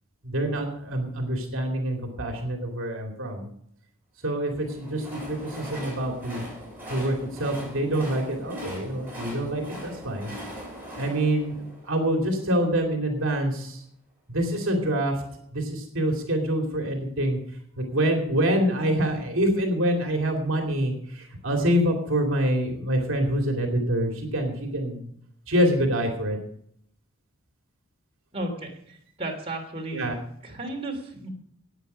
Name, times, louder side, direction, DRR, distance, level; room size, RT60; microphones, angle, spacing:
voice 1, 0.2-3.5 4.2-6.4 6.9-10.3 11.0-11.6 11.9-13.8 14.3-15.2 15.5-17.4 17.8-25.1 25.5-26.4 29.9-30.1, right 1 dB, 60° right, 2 dB, 2.5 m, -26 dB
Train, 4.5-12.6, equal, 10° right, 6.8 m, -41 dB
voice 2, 28.3-28.7 29.2-30.1 30.4-31.3, right 2 dB, 25° right, 0 dB, 3.1 m, -33 dB
16.0 x 9.2 x 5.6 m, 0.70 s
head